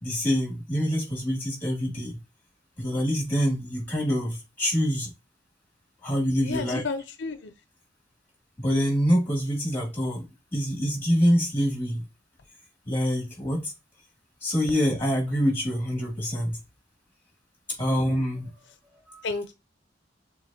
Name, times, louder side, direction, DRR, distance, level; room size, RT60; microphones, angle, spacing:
voice 1, 0.0-2.2 2.8-5.1 6.0-6.8 8.6-10.2 10.5-12.0 12.8-13.7 14.4-16.6 17.8-18.5 19.1-19.3, equal, 10° left, 2.7 m, -25 dB
voice 2, 6.4-7.5 17.9-18.0 19.2-19.5, left 4 dB, 75° left, 0.5 m, -32 dB
6.8 x 2.5 x 2.8 m
head